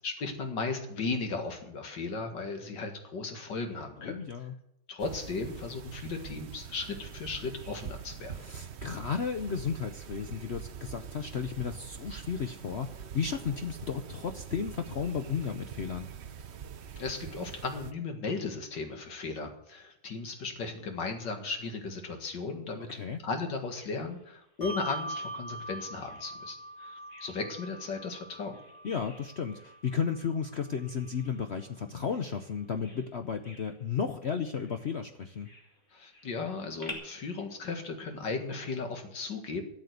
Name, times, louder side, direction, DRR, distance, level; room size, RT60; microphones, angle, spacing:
voice 1, 0.0-4.2 4.9-8.3 17.0-22.9 23.2-28.5 35.9-39.6, left 4 dB, 80° left, 5 dB, 2.5 m, -36 dB
voice 2, 4.0-4.5 8.3-16.1 22.9-23.2 28.8-35.5, left 6 dB, 55° left, 7 dB, 0.8 m, -34 dB
sound 1, 5.0-17.9, right 7 dB, 55° right, 0.8 m, -44 dB
Bird vocalization bird call bird song, 23.3-36.9, left 2 dB, 30° left, 3.0 m, -54 dB
Bell, 24.6-31.5, right 1 dB, 10° left, 1.6 m, -43 dB
13.5 x 7.8 x 8.0 m, 0.81 s
omnidirectional pair, 1.9 m